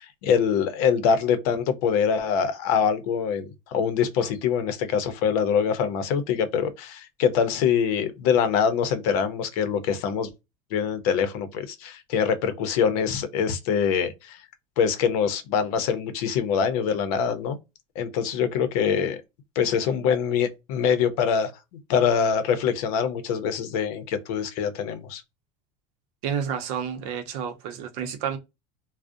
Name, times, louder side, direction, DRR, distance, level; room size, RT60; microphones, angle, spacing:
voice 1, 0.0-10.3 10.7-14.4 14.8-17.6 18.0-19.2 19.6-21.5 21.9-25.2, left 7 dB, 80° left, 0.6 m, -24 dB
voice 2, 26.2-28.4, right 8 dB, 70° right, 0.6 m, -30 dB
2.5 x 2.0 x 2.4 m
cardioid pair, 170°, 19 cm